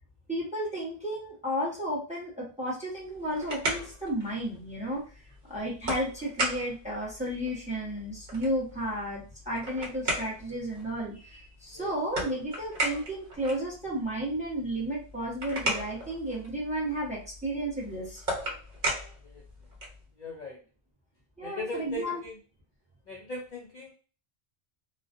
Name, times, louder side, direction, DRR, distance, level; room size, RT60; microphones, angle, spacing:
voice 1, 0.3-5.2 5.5-18.2 21.4-22.2, right 1 dB, 5° right, -4 dB, 0.9 m, -33 dB
sound 1, 3.0-20.1, right 1 dB, 55° right, 1.1 m, -37 dB
voice 2, 20.2-20.6 21.4-22.4 23.1-23.9, left 1 dB, 55° left, -2 dB, 0.6 m, -38 dB
2.4 x 2.2 x 2.5 m, 0.36 s
omnidirectional pair, 1.0 m